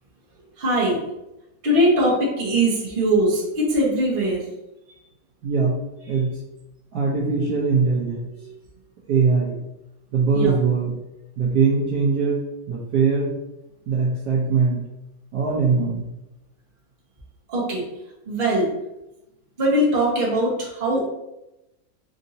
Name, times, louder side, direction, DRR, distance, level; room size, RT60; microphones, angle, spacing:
voice 1, 0.6-1.1 1.6-4.5 4.9-5.0 10.3-10.5 17.5-17.9 18.3-18.7 19.6-21.1, right 1 dB, 35° right, -5 dB, 0.9 m, -21 dB
voice 2, 5.4-5.8 6.1-6.4 6.9-8.5 9.1-9.6 10.1-10.9 11.4-12.4 12.7-13.3 13.9-14.8 15.3-16.0, right 5 dB, 65° right, -5 dB, 1.1 m, -21 dB
3.8 x 2.6 x 2.7 m, 0.93 s
omnidirectional pair, 2.2 m